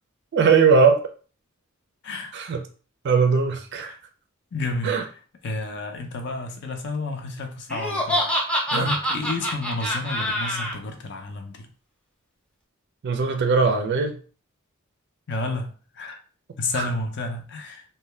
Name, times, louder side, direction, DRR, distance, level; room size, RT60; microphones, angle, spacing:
voice 1, 0.3-1.0 2.3-2.6 3.0-3.9 4.8-5.0 8.7-8.9 13.0-14.2 16.7-16.9, right 5 dB, 55° right, 0.4 m, -20 dB
voice 2, 2.0-2.3 3.8-4.0 4.5-5.0 5.4-11.7 15.3-16.2 16.6-17.8, left 2 dB, 55° left, 0.5 m, -31 dB
Laughter, 7.7-10.7, equal, 5° left, 0.5 m, -25 dB
2.6 x 2.2 x 3.1 m
head